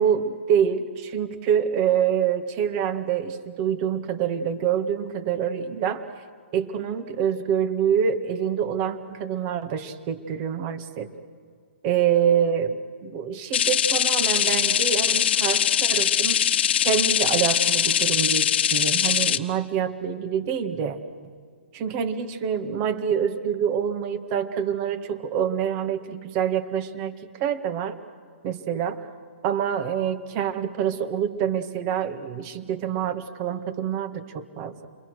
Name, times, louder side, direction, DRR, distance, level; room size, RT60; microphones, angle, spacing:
voice 1, 0.0-6.1 6.5-11.1 11.8-16.4 16.8-21.0 21.7-28.0 28.4-29.1 29.4-34.9, right 8 dB, 30° right, 8 dB, 1.8 m, -26 dB
sound 1, 13.5-19.4, left 9 dB, 60° left, 1.2 m, -22 dB
30.0 x 22.0 x 6.4 m, 2.1 s
hypercardioid pair, 145°, 6 cm